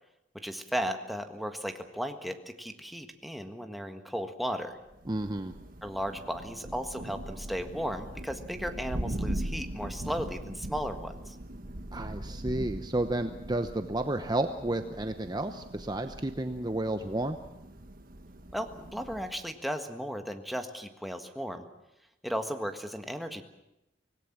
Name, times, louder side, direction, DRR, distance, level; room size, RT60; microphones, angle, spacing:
voice 1, 0.3-4.8 5.8-11.3 18.5-21.6 22.2-23.4, equal, ahead, 5 dB, 1.6 m, -35 dB
Thunder, 4.9-19.5, right 1 dB, 50° right, 1.6 m, -40 dB
voice 2, 5.1-5.6 11.9-17.4, right 1 dB, 25° right, 7 dB, 0.9 m, -31 dB
25.5 x 19.0 x 7.4 m, 0.89 s
head